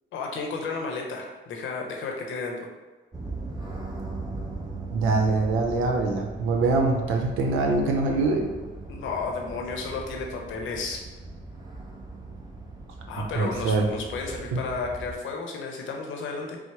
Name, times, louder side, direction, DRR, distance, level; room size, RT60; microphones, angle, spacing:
voice 1, 0.1-2.5 8.9-11.0 13.1-16.6, left 4 dB, 75° left, 1 dB, 0.8 m, -32 dB
sound 1, 3.1-15.1, right 2 dB, 20° right, 0.9 m, -39 dB
voice 2, 4.9-8.5 13.3-13.9 14.5-14.6, right 3 dB, 90° right, 2 dB, 0.7 m, -24 dB
4.3 x 2.0 x 4.5 m, 1.3 s
cardioid pair, 90°, 20 cm